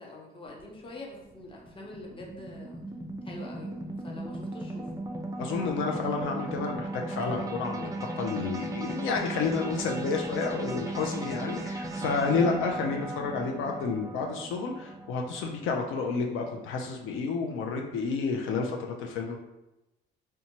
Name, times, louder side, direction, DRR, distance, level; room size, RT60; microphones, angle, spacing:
voice 1, 0.0-2.8 3.2-4.9 12.3-12.7, left 2 dB, 25° left, -1 dB, 0.7 m, -45 dB
sound 1, 0.6-17.0, right 2 dB, 15° right, 0.4 m, -37 dB
voice 2, 5.4-7.9 8.1-19.4, left 4 dB, 85° left, 2 dB, 0.4 m, -30 dB
2.7 x 2.2 x 2.9 m, 0.95 s
cardioid pair, 90°, 20 cm